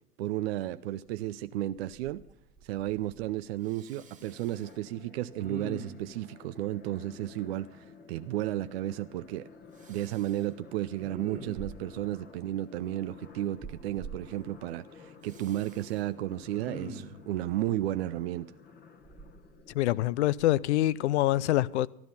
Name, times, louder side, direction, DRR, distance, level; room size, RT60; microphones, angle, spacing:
voice 1, 0.2-2.2 2.6-9.5 9.9-18.5, right 14 dB, 45° right, 0.4 m, -33 dB
Respiratory sounds, 1.8-2.3 2.6-3.3 3.7-4.7 5.4-6.2 9.8-10.4 11.0-12.0 13.6-14.2 15.3-16.0 16.5-17.2 19.0-20.0 20.4-20.6, right 2 dB, 15° right, 1.6 m, -44 dB
sound 1, 3.9-21.2, left 5 dB, 20° left, 1.1 m, -54 dB
sound 2, 6.3-13.2, left 4 dB, 85° left, 4.6 m, -57 dB
voice 2, 19.7-21.9, left 15 dB, 50° left, 0.4 m, -25 dB
13.5 x 11.5 x 5.6 m
hypercardioid pair, 105°, 47 cm